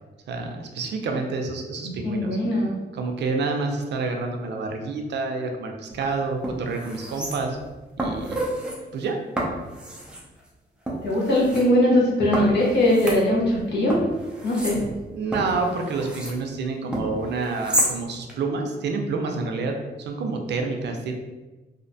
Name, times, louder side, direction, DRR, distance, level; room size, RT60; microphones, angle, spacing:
voice 1, 0.3-2.4 2.9-7.6 8.0-8.4 8.9-9.2 15.1-21.1, right 3 dB, 80° right, 3 dB, 0.4 m, -28 dB
voice 2, 1.8-2.7 11.0-14.0 14.4-14.8, left 1 dB, 80° left, -4 dB, 0.8 m, -21 dB
sound 1, 5.9-6.0 6.4-7.7 8.0-8.8 9.4-10.2 10.9-11.6 12.3-13.6 13.9-16.4 16.9-17.9 18.3-18.4, right 1 dB, 5° right, 0.3 m, -30 dB
2.5 x 2.1 x 2.6 m, 1.2 s
wide cardioid pair, 170°, 18 cm